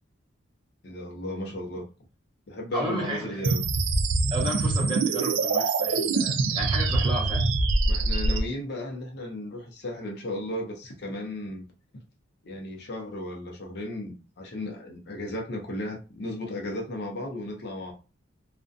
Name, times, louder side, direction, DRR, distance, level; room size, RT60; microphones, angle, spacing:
voice 1, 0.8-1.8 2.5-3.6 7.9-11.6 12.4-17.9, left 1 dB, 55° left, 0.5 m, -35 dB
voice 2, 2.7-3.4 4.3-7.4, right 1 dB, 25° right, 0.9 m, -32 dB
sound 1, 3.4-8.4, right 3 dB, 75° right, 0.4 m, -24 dB
2.4 x 2.1 x 2.5 m
head